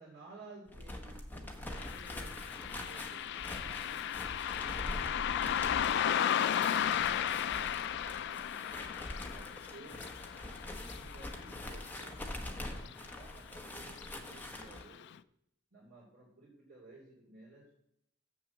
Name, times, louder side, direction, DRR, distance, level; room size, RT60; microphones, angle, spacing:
voice 1, 0.0-6.0 6.5-10.0 10.7-14.0 14.3-15.1 15.7-17.7, right 2 dB, 50° right, -6 dB, 3.1 m, -56 dB
sound 1, 0.7-14.8, left 1 dB, 10° left, 0.9 m, -44 dB
Car passing by, 1.7-12.6 12.8-12.9 13.9-14.1 14.5-14.6 15.1-15.2, left 9 dB, 55° left, 0.3 m, -35 dB
7.1 x 6.1 x 7.1 m, 0.76 s
head